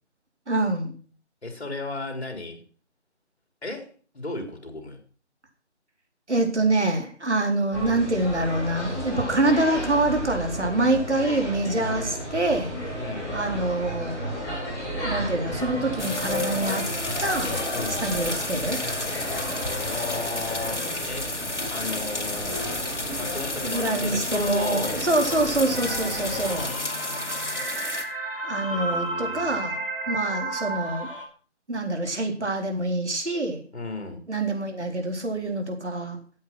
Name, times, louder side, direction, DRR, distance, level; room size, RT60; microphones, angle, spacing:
voice 1, 0.5-0.9 6.3-13.0 13.3-14.2 15.0-16.8 17.2-17.5 18.0-18.8 23.6-26.7 28.4-29.8 30.1-31.1 31.7-33.6 34.3-36.2, right 2 dB, 75° right, 3 dB, 4.2 m, -25 dB
voice 2, 1.4-2.6 3.6-5.0 13.0-13.3 17.7-18.1 19.8-21.3 21.7-22.6 23.2-25.0 26.6-27.6 28.7-29.6 33.7-34.3, left 3 dB, 65° left, 5 dB, 4.2 m, -35 dB
sound 1, 7.7-26.7, equal, 5° left, 4.5 m, -33 dB
sound 2, 16.0-28.0, left 2 dB, 80° left, 2.7 m, -32 dB
sound 3, 25.7-31.2, right 2 dB, 50° right, 3.7 m, -32 dB
13.5 x 8.7 x 6.1 m, 0.40 s
figure-of-eight pair, 155°, 35 cm